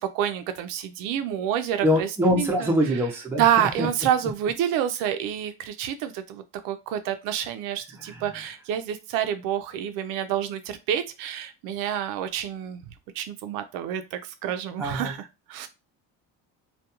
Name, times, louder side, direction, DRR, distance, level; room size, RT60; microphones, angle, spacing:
voice 1, 0.0-2.1 2.3-2.7 3.4-12.8 13.1-15.7, right 10 dB, 70° right, 9 dB, 0.5 m, -28 dB
voice 2, 1.8-3.9 7.9-8.2 14.8-15.2, equal, 5° right, 0 dB, 0.6 m, -24 dB
2.3 x 2.2 x 2.8 m, 0.27 s
cardioid pair, 150°, 34 cm